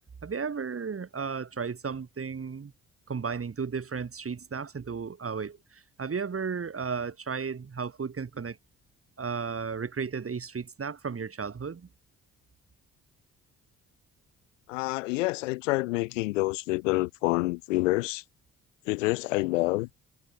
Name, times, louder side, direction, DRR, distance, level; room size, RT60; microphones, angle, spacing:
voice 1, 0.2-2.7 3.1-8.6 9.2-11.9, right 5 dB, 35° right, 5.9 m, -34 dB
voice 2, 14.7-18.2 18.9-19.9, left 22 dB, 75° left, 4.9 m, -27 dB
figure-of-eight pair, 40°, 38 cm